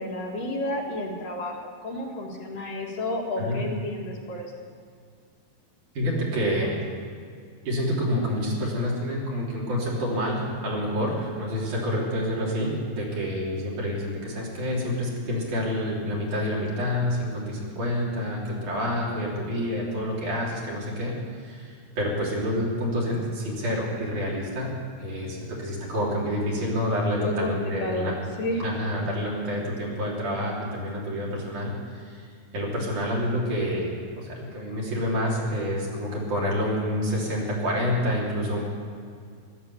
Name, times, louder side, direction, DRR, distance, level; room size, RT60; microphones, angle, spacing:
voice 1, 0.0-4.5 27.2-28.1 28.4-28.6, left 1 dB, 60° left, -2 dB, 3.3 m, -31 dB
voice 2, 5.9-6.8 7.6-21.1 21.4-28.1 28.6-32.3 32.5-38.6, equal, 55° right, -4 dB, 4.5 m, -28 dB
16.5 x 12.0 x 7.1 m, 2.2 s
omnidirectional pair, 4.5 m